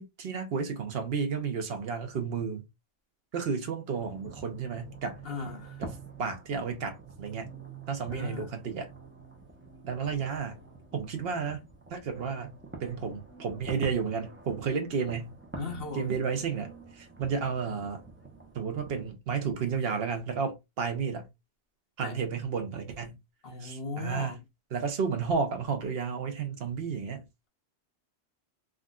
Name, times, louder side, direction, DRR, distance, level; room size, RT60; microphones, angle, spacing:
voice 1, 0.0-2.6 3.3-5.2 5.8-5.9 6.2-7.5 7.9-8.9 9.8-10.6 10.9-11.6 11.9-15.4 15.9-18.0 18.5-21.3 22.0-23.2 23.6-24.4 24.7-27.3, right 5 dB, 60° right, 0.9 m, -32 dB
sound 1, 3.9-19.1, right 3 dB, 15° right, 0.5 m, -47 dB
voice 2, 5.2-5.8 8.1-8.5 15.5-16.1 22.0-22.2 23.4-24.4, left 4 dB, 60° left, 1.2 m, -37 dB
3.5 x 2.5 x 2.3 m
omnidirectional pair, 1.2 m